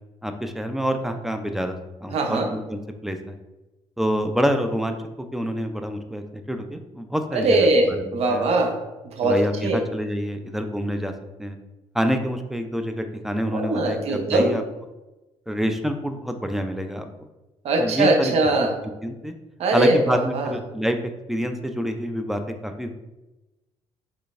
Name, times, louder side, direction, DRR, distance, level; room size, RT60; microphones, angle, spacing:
voice 1, 0.2-3.4 4.0-8.5 9.2-11.1 11.4-11.6 11.9-14.6 15.5-17.1 17.8-18.3 19.0-19.3 19.7-21.0 21.3-22.9, equal, 5° right, 6 dB, 0.3 m, -27 dB
voice 2, 2.1-2.5 7.3-8.8 9.0-9.8 13.5-14.5 17.6-18.7 19.6-20.5, right 2 dB, 60° right, 3 dB, 0.6 m, -21 dB
3.8 x 3.3 x 2.4 m, 1.1 s
cardioid pair, 95°, 12 cm